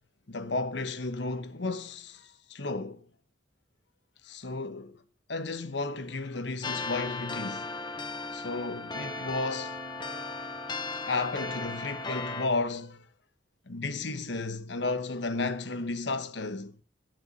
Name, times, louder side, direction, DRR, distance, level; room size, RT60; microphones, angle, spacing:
voice 1, 0.3-3.1 4.2-5.0 5.3-7.8 8.3-9.8 10.9-13.1 13.7-16.8, left 3 dB, 70° left, 1.1 m, -33 dB
sound 1, 6.6-12.5, left 3 dB, 25° left, 1.2 m, -36 dB
16.0 x 6.9 x 5.5 m
head